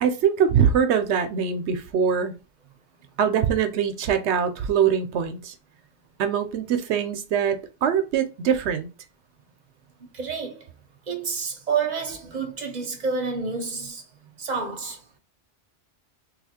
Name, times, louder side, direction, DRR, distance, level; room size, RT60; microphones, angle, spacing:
voice 1, 0.0-2.3 3.2-5.5 6.2-8.9, right 7 dB, 80° right, 0.9 m, -23 dB
voice 2, 10.1-10.7 11.1-14.1 14.4-15.0, right 5 dB, 45° right, 0.7 m, -29 dB
2.8 x 2.4 x 4.1 m
omnidirectional pair, 1.1 m